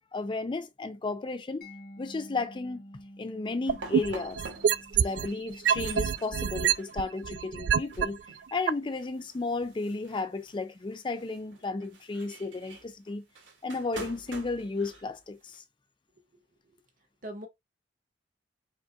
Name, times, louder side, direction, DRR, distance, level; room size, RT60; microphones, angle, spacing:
voice 1, 0.1-1.7 2.0-2.8 3.2-4.4 4.9-8.2 8.5-13.2 13.6-15.6, left 3 dB, 25° left, 0.4 m, -33 dB
Mallet percussion, 1.6-8.4, equal, 55° left, 1.4 m, -51 dB
sound 1, 3.7-5.3 5.7-8.1 8.7-8.8, right 8 dB, 70° right, 0.3 m, -25 dB
sound 2, 3.7-15.6, right 3 dB, 85° right, 1.7 m, -48 dB
voice 2, 16.3-16.8 17.2-17.5, right 1 dB, 50° right, 1.4 m, -43 dB
5.1 x 3.6 x 2.3 m
head